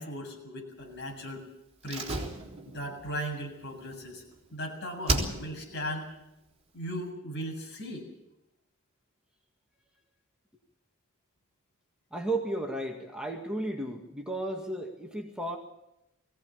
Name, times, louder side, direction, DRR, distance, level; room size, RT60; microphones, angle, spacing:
voice 1, 0.0-1.5 1.8-2.2 2.7-4.2 4.5-6.1 6.7-8.1, equal, 55° left, 1 dB, 7.4 m, -37 dB
Slam, 1.8-4.6 5.0-5.8 6.1-6.2, right 2 dB, 30° right, 3.8 m, -34 dB
voice 2, 12.1-15.6, right 1 dB, 5° right, 1 dB, 2.0 m, -34 dB
21.5 x 17.0 x 8.4 m, 0.88 s
head